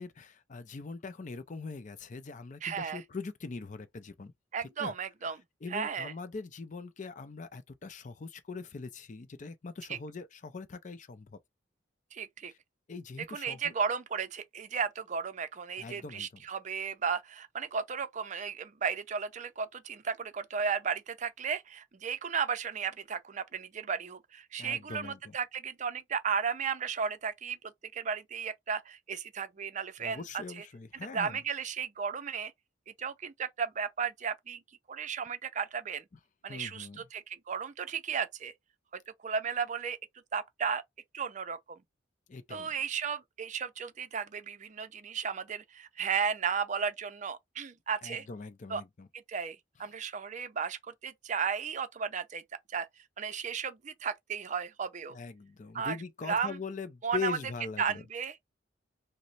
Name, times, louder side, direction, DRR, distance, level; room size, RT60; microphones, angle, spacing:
voice 1, 0.0-4.3 4.8-4.9 5.6-11.4 12.9-13.7 15.8-16.4 24.6-25.3 30.0-31.4 36.5-37.1 42.3-42.7 48.0-49.1 55.1-58.0, left 4 dB, 40° left, 0.5 m, -41 dB
voice 2, 2.6-3.0 4.5-5.4 5.7-6.1 9.9-10.0 12.1-12.5 13.3-27.6 27.8-30.2 30.6-30.7 30.9-32.5 33.0-34.6 34.9-36.0 36.4-38.5 39.2-40.0 40.3-40.8 41.1-41.8 42.5-48.3 48.7-48.8 49.1-52.4 52.7-52.9 53.2-55.1 55.7-56.0 56.3-56.6 57.0-57.4 57.8-58.4, right 6 dB, 40° right, 0.5 m, -34 dB
3.0 x 2.0 x 4.0 m
head